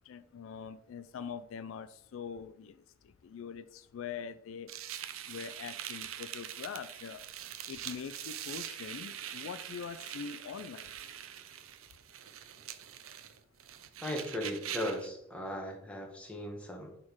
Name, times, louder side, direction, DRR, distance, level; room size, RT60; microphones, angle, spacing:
voice 1, 0.0-4.7 5.3-7.2 7.7-10.9, left 7 dB, 70° left, 13 dB, 0.3 m, -43 dB
sound 1, 4.7-15.1, right 10 dB, 80° right, 0.5 m, -44 dB
voice 2, 14.0-17.0, left 1 dB, 5° left, 0 dB, 1.2 m, -37 dB
6.3 x 3.7 x 4.7 m, 0.74 s
head